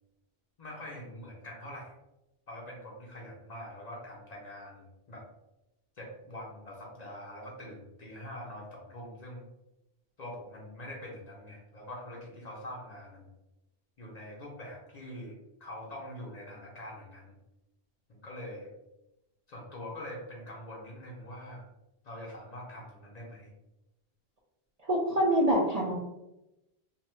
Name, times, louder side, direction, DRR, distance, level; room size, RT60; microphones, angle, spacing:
voice 1, 0.6-1.9 2.5-5.2 6.0-9.5 10.2-13.3 14.0-15.3 15.6-17.4 18.1-18.7 19.5-21.7 22.0-23.5, left 1 dB, 50° left, -3 dB, 0.6 m, -44 dB
voice 2, 24.9-25.9, equal, 55° right, -4 dB, 0.5 m, -25 dB
2.6 x 2.2 x 3.0 m, 0.92 s
omnidirectional pair, 1.1 m